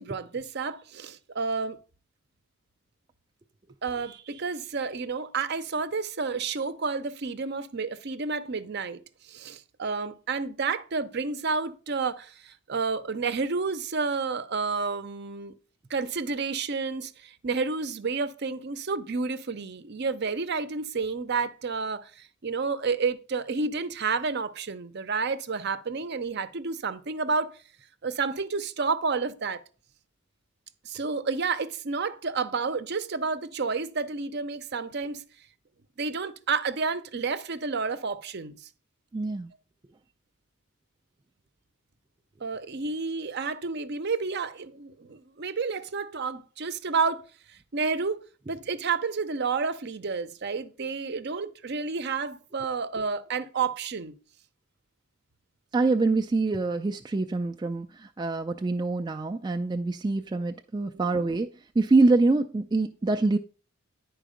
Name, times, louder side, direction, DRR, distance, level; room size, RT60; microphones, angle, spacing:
voice 1, 0.0-1.8 3.8-9.0 9.3-15.5 15.9-27.5 28.0-29.6 30.8-35.2 36.0-38.5 42.4-47.2 47.7-48.2 48.5-54.1, right 4 dB, 50° right, 0.6 m, -30 dB
voice 2, 39.1-39.5 55.7-61.5 61.8-63.4, right 3 dB, 20° right, 0.3 m, -25 dB
10.0 x 4.7 x 5.0 m
head